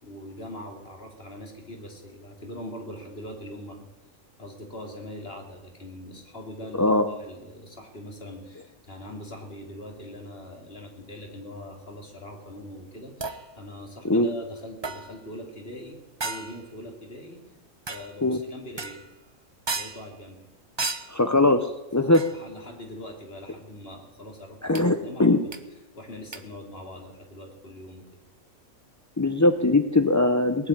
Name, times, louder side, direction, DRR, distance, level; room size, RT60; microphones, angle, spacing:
voice 1, 0.0-3.9 4.4-17.4 17.9-19.0 19.7-20.4 22.0-25.4 25.9-28.2, left 1 dB, 40° left, 2 dB, 3.2 m, -42 dB
sound 1, 13.2-13.5 14.8-15.3 16.2-16.7 17.9-18.2 18.8-19.1 19.7-20.1 20.8-21.2 22.1-22.5 24.7-24.8 25.5-25.6 26.3-26.4, right 3 dB, 25° right, 0.7 m, -34 dB
voice 2, 21.1-22.2 24.6-25.4 29.2-30.7, left 2 dB, 20° left, 6 dB, 0.4 m, -21 dB
19.5 x 7.6 x 9.8 m, 1.0 s
omnidirectional pair, 1.5 m